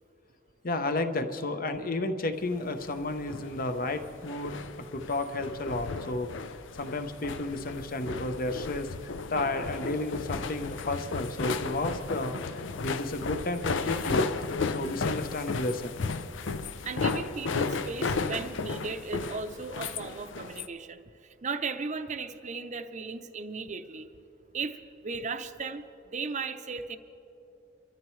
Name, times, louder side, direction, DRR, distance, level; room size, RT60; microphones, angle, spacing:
voice 1, 0.6-4.6 4.9-6.3 6.8-14.3 14.7-16.1, left 2 dB, 50° left, 8 dB, 0.9 m, -32 dB
sound 1, 2.7-20.7, left 4 dB, 80° left, 0.6 m, -34 dB
voice 2, 16.8-24.1 24.5-27.0, right 4 dB, 40° right, 8 dB, 0.6 m, -36 dB
28.0 x 13.0 x 3.2 m, 2.9 s
head